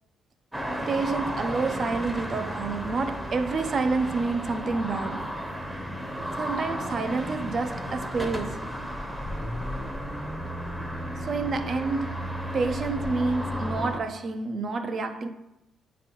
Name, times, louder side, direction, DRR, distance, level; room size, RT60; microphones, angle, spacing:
sound 1, 0.5-14.0, equal, 10° right, 0.8 m, -33 dB
voice 1, 0.9-5.3 6.4-8.8 11.2-12.3 12.5-15.3, right 4 dB, 50° right, 0.5 m, -29 dB
8.7 x 4.0 x 3.0 m
cardioid pair, 90°, 0 cm